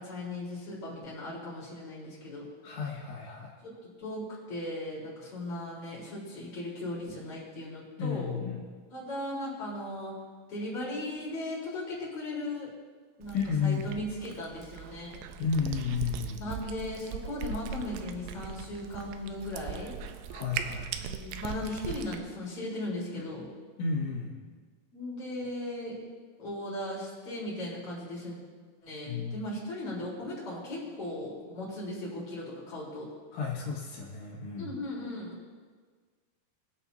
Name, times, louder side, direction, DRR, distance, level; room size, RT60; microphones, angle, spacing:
voice 1, 0.0-2.5 3.6-3.7 4.0-8.4 8.9-10.2 10.5-12.7 13.2-15.2 16.4-20.0 21.0-23.5 24.9-26.0 26.4-28.4 28.8-33.1 34.6-35.6, left 1 dB, 30° left, -6 dB, 4.4 m, -37 dB
voice 2, 2.6-3.5 8.0-8.6 13.3-13.9 15.4-16.4 20.3-20.9 23.8-24.4 29.1-29.4 33.3-34.7, left 5 dB, 75° left, -4 dB, 4.1 m, -32 dB
Cat, 13.2-22.2, right 8 dB, 90° right, 3.3 m, -40 dB
23.0 x 8.5 x 2.8 m, 1.5 s
omnidirectional pair, 5.7 m